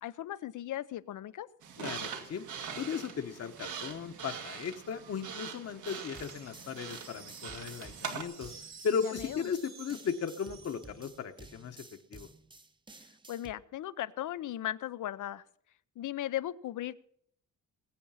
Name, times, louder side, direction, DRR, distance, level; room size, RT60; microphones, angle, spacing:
voice 1, 0.0-1.5 9.0-9.4 13.3-15.4 16.0-17.0, left 12 dB, 80° left, 15 dB, 0.8 m, -37 dB
sound 1, 1.6-8.2, right 6 dB, 75° right, 2.2 m, -42 dB
voice 2, 1.8-2.5 2.8-8.5 8.8-11.8 12.1-12.3, left 6 dB, 55° left, 6 dB, 1.2 m, -36 dB
sound 2, 5.9-13.5, right 3 dB, 15° right, 0.9 m, -53 dB
sound 3, 5.9-11.4, right 6 dB, 60° right, 2.8 m, -52 dB
21.0 x 8.5 x 5.7 m, 0.66 s
cardioid pair, 125°, 30 cm